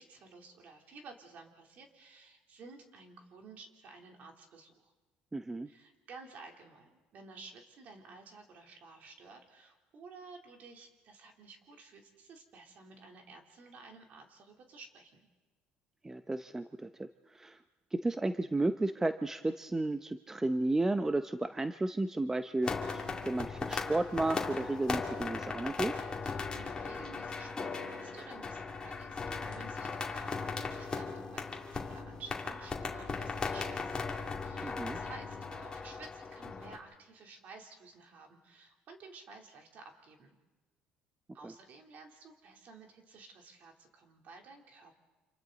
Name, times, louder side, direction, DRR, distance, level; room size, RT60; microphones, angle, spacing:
voice 1, 0.0-4.9 5.7-15.1 26.2-34.1 34.4-40.3 41.3-44.9, right 4 dB, 55° right, 2 dB, 3.4 m, -53 dB
voice 2, 5.3-5.7 16.0-17.1 17.3-17.6 17.9-25.9 34.6-35.0 41.4-41.5, right 2 dB, 15° right, 9 dB, 0.7 m, -33 dB
sound 1, 22.6-36.8, left 4 dB, 25° left, 2.5 m, -38 dB
29.5 x 27.0 x 4.0 m, 1.2 s
cardioid pair, 105°, 3 cm